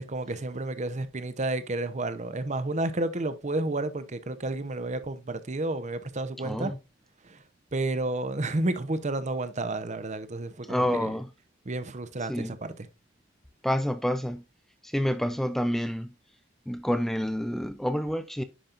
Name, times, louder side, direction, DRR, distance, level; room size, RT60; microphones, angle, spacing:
voice 1, 0.0-6.7 7.2-7.4 7.7-11.1 11.7-12.7, right 2 dB, 35° right, 0.7 m, -31 dB
voice 2, 6.4-6.8 10.6-11.3 12.2-12.6 13.6-14.4 14.8-16.1 16.7-18.4, equal, ahead, 0.4 m, -28 dB
10.0 x 5.3 x 2.5 m
head